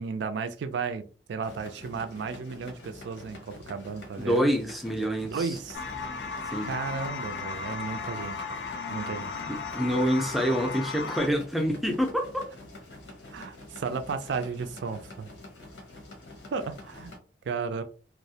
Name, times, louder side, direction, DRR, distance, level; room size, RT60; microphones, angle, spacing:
voice 1, 0.0-4.5 5.3-5.8 6.6-8.4 8.9-9.4 13.3-15.3 16.5-17.1 17.5-17.8, right 5 dB, 80° right, 9 dB, 0.3 m, -34 dB
sound 1, 1.4-17.2, left 2 dB, 85° left, 0.8 m, -47 dB
voice 2, 4.2-5.6 6.4-6.7 9.5-12.4, equal, ahead, 2 dB, 0.4 m, -27 dB
sound 2, 5.7-11.3, left 4 dB, 70° left, 0.3 m, -35 dB
2.4 x 2.1 x 2.7 m, 0.37 s
head